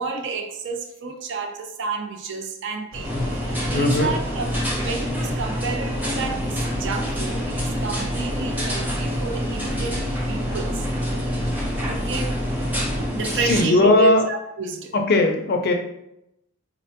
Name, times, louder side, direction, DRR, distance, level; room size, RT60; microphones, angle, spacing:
voice 1, 0.0-10.9 11.9-12.4 13.0-15.0, right 4 dB, 55° right, 5 dB, 0.4 m, -30 dB
sound 1, 2.9-13.0, equal, 80° right, 0.8 m, -32 dB
sound 2, 3.0-13.6, equal, 10° right, 0.6 m, -27 dB
voice 2, 3.7-4.1 13.5-14.2 15.1-15.7, left 2 dB, 45° left, 4 dB, 0.4 m, -18 dB
4.0 x 2.1 x 2.7 m, 0.82 s
head